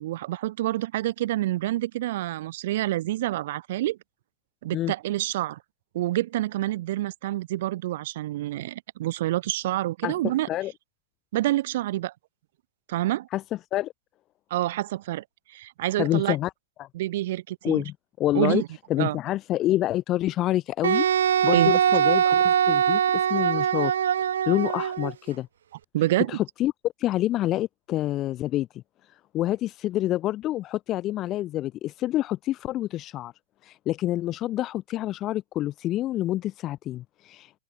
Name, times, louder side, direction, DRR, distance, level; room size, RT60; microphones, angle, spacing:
voice 1, 0.0-4.0 4.6-5.6 5.9-10.5 11.3-12.1 12.9-13.3 14.5-16.4 16.9-17.8 18.3-18.7 19.0-19.2 21.5-21.7 25.9-26.3, right 15 dB, 65° right, 0.6 m, -27 dB
voice 2, 10.0-10.7 13.3-13.4 13.7-13.9 16.0-16.5 16.8-16.9 17.6-18.6 18.9-23.9 24.5-25.5 26.3-28.8 29.3-33.3 33.6-37.6, left 14 dB, 35° left, 1.2 m, -27 dB
Wind instrument woodwind instrument, 20.8-25.1, right 9 dB, 80° right, 1.0 m, -22 dB
hypercardioid pair, 120°, 0 cm